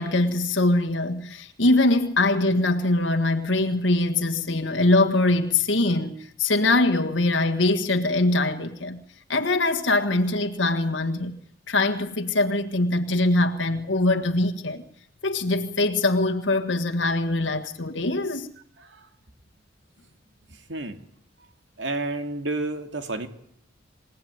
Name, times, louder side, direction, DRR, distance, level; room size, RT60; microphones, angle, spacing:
voice 1, 0.0-9.0 9.3-11.4 11.7-14.8 15.2-18.5, left 2 dB, 75° left, 1.7 m, -23 dB
voice 2, 21.8-23.3, right 2 dB, 70° right, 2.5 m, -30 dB
27.5 x 17.5 x 9.5 m
head